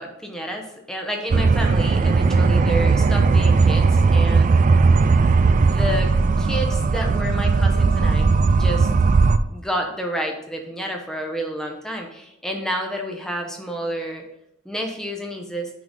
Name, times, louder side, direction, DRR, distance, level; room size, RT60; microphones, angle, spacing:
voice 1, 0.0-4.5 5.6-6.1 6.4-8.9 9.5-14.2 14.6-15.7, equal, 5° left, 1 dB, 0.8 m, -30 dB
sound 1, 1.3-9.4, right 4 dB, 35° right, 0.3 m, -17 dB
6.2 x 3.9 x 5.3 m, 0.80 s
head